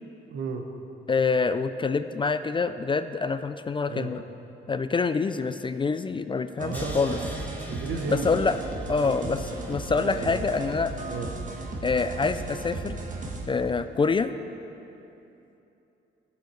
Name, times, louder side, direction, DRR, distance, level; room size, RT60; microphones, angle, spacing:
voice 1, 0.3-0.7 3.9-4.1 6.6-7.4 7.7-8.4 9.0-9.3 10.0-10.5 11.0-11.3, right 4 dB, 70° right, 4 dB, 1.2 m, -34 dB
voice 2, 1.1-4.2 4.7-7.2 8.1-8.6 8.9-10.9 11.8-13.0 13.5-14.3, left 4 dB, 25° left, 11 dB, 0.4 m, -26 dB
sound 1, 6.6-13.5, right 2 dB, 40° right, 1.6 m, -36 dB
Crash cymbal, 6.7-11.8, left 1 dB, 10° left, 1.3 m, -47 dB
15.0 x 7.0 x 4.6 m, 2.9 s
cardioid pair, 90°, 20 cm